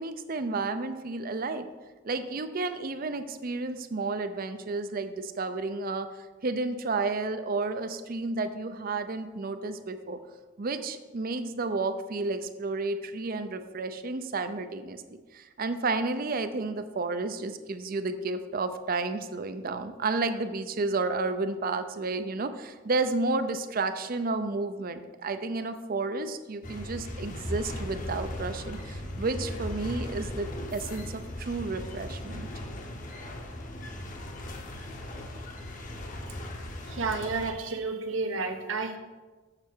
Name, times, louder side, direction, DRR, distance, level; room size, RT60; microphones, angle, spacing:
voice 1, 0.0-1.7 2.0-10.2 10.6-32.5, right 3 dB, 45° right, 10 dB, 0.5 m, -31 dB
sound 1, 26.6-37.5, left 1 dB, 40° left, 0.9 m, -38 dB
voice 2, 36.9-39.0, right 4 dB, 75° right, 5 dB, 0.9 m, -31 dB
7.0 x 6.7 x 4.5 m, 1.3 s
head